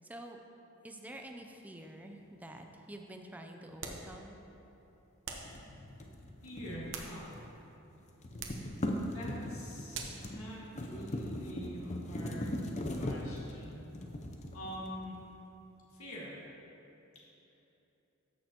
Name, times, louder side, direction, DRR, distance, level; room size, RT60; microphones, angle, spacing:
voice 1, 0.0-0.4 0.8-4.4, right 1 dB, 10° right, 3 dB, 0.5 m, -48 dB
sound 1, 3.8-4.1 5.2-5.6 6.6-7.5 8.4-8.7 9.9-10.3, right 4 dB, 60° right, 0.9 m, -43 dB
sound 2, 5.4-7.6 7.9-15.2, left 1 dB, 35° left, 0.7 m, -40 dB
voice 2, 6.4-7.4 9.0-10.0 10.3-12.6 12.9-13.9 14.5-15.1 15.9-16.4, equal, 80° left, -5 dB, 1.9 m, -45 dB
14.0 x 6.5 x 3.0 m, 3.0 s
head